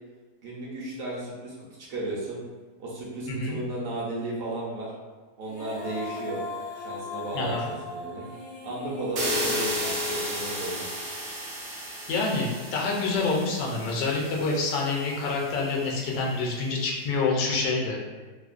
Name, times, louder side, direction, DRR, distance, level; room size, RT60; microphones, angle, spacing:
voice 1, 0.4-2.4 2.8-4.9 5.4-6.4 6.8-8.3 8.6-10.8, right 2 dB, 70° right, -4 dB, 0.9 m, -34 dB
Female singing, 5.4-10.6, left 2 dB, 50° left, 0.6 m, -39 dB
voice 2, 7.3-7.7 12.1-18.0, left 3 dB, 80° left, -2 dB, 1.1 m, -27 dB
sound 1, 9.2-16.0, equal, 85° right, 0.5 m, -33 dB
2.9 x 2.0 x 2.3 m, 1.3 s
omnidirectional pair, 1.7 m